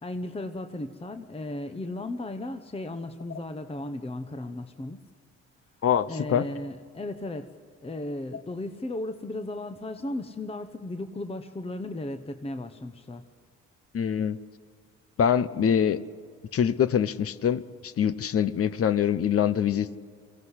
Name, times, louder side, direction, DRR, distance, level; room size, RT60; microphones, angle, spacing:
voice 1, 0.0-5.0 6.1-7.5 7.8-13.2, left 1 dB, 20° left, 8 dB, 1.1 m, -35 dB
voice 2, 5.8-6.4 13.9-14.4 15.2-16.0 16.5-20.0, left 8 dB, 50° left, 15 dB, 0.9 m, -24 dB
23.5 x 16.0 x 8.1 m, 2.1 s
cardioid pair, 90°, 30 cm